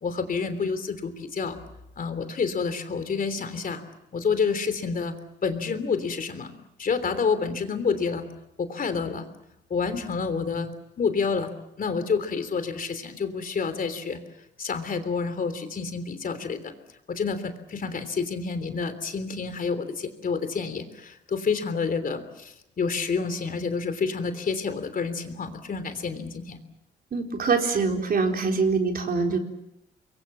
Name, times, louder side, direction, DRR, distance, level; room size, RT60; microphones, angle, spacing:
voice 1, 0.0-1.6 2.0-3.8 4.1-5.1 5.4-6.5 6.8-8.2 8.6-9.3 9.7-10.7 11.0-14.2 14.6-16.7 17.1-26.6, left 5 dB, 45° left, 10 dB, 3.3 m, -28 dB
voice 2, 27.1-29.4, right 4 dB, 50° right, 3 dB, 4.1 m, -24 dB
26.0 x 23.0 x 7.3 m, 0.86 s
cardioid pair, 90°, 20 cm